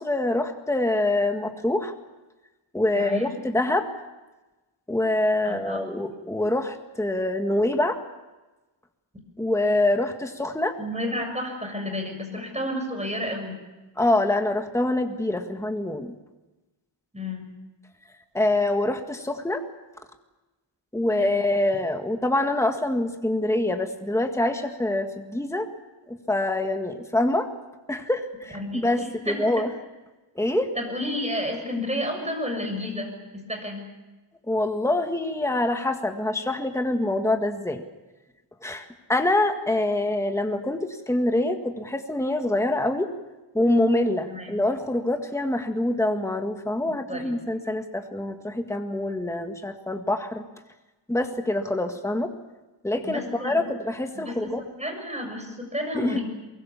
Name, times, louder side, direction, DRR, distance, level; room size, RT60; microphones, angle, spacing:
voice 1, 0.0-1.9 2.7-3.9 4.9-8.0 9.4-10.8 14.0-16.1 18.3-19.7 20.9-25.7 26.1-27.5 27.9-29.0 29.4-29.7 30.4-30.7 34.5-37.8 38.6-43.1 43.5-50.4 51.1-52.3 52.8-54.6 56.0-56.2, left 1 dB, 5° left, 5 dB, 1.8 m, -25 dB
voice 2, 2.9-3.4 5.5-6.1 10.8-13.6 17.1-17.6 21.2-21.4 28.5-29.6 30.8-33.9 44.3-44.6 47.1-47.4 53.0-53.7 54.1-56.2, left 1 dB, 15° right, 3 dB, 7.0 m, -31 dB
23.5 x 22.5 x 7.2 m, 1.1 s
wide cardioid pair, 105°, 49 cm